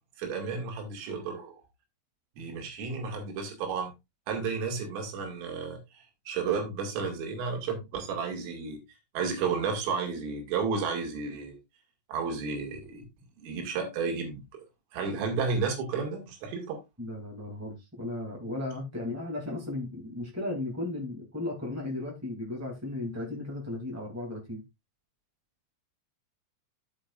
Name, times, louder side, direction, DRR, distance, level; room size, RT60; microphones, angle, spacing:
voice 1, 0.2-1.6 2.4-3.9 4.3-8.8 9.1-11.6 12.1-13.1 13.4-14.4 14.9-16.8, right 5 dB, 85° right, 4.6 m, -32 dB
voice 2, 17.0-24.6, left 2 dB, 10° right, 0.7 m, -35 dB
15.0 x 5.3 x 2.5 m
omnidirectional pair, 5.7 m